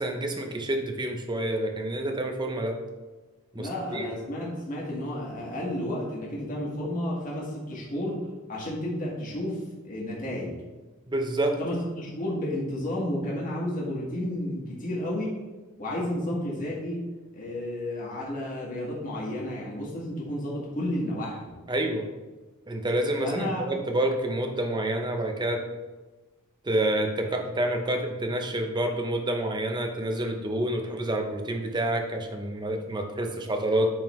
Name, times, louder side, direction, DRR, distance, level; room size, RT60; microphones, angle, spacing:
voice 1, 0.0-2.8 3.5-4.1 11.1-11.6 21.7-22.1 22.7-25.6 26.6-33.9, right 1 dB, 20° right, 4 dB, 0.7 m, -28 dB
voice 2, 3.5-10.5 11.6-15.4 15.8-17.0 17.3-21.5 23.2-23.7, left 1 dB, 40° left, -4 dB, 1.5 m, -32 dB
8.8 x 3.8 x 3.1 m, 1.2 s
head